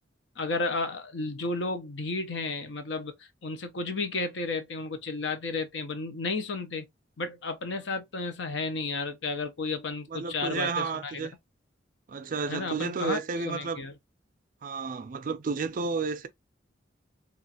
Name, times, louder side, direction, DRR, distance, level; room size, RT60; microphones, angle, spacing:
voice 1, 0.4-6.9 7.2-11.3 12.5-13.2 13.4-13.9, left 3 dB, 70° left, 0.6 m, -32 dB
voice 2, 10.1-11.3 12.1-13.8 14.6-16.3, right 4 dB, 45° right, 0.4 m, -31 dB
3.0 x 2.4 x 2.7 m
head